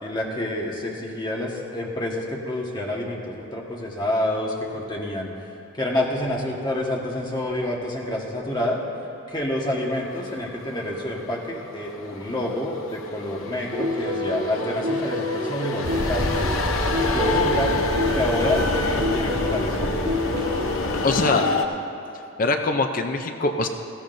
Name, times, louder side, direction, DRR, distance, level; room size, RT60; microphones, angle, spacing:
voice 1, 0.0-5.3 5.7-8.8 9.3-16.3 17.1-17.7 18.1-20.1 20.8-21.6, left 1 dB, 20° left, -2 dB, 1.4 m, -28 dB
sound 1, 10.0-21.7, left 4 dB, 80° left, 0.8 m, -29 dB
sound 2, 13.7-20.7, left 1 dB, 90° right, 1.8 m, -27 dB
sound 3, 15.8-21.2, equal, 75° right, 3.4 m, -29 dB
voice 2, 21.0-21.5 22.4-23.7, left 3 dB, 40° left, 6 dB, 0.5 m, -22 dB
18.0 x 14.5 x 2.6 m, 2.7 s
head